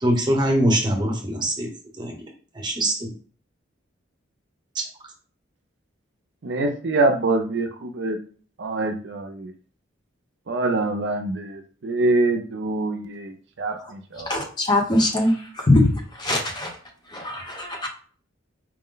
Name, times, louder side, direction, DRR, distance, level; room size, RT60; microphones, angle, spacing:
voice 1, 0.0-1.7 2.0-2.1 2.6-3.1, right 1 dB, 25° right, 0.9 m, -22 dB
voice 2, 6.4-8.2 8.6-9.5 10.5-14.3, right 2 dB, 60° right, 0.5 m, -25 dB
voice 3, 14.3-15.4 15.7-15.9 16.2-16.7 17.1-17.9, left 1 dB, 20° left, 0.8 m, -21 dB
4.7 x 2.1 x 3.8 m
head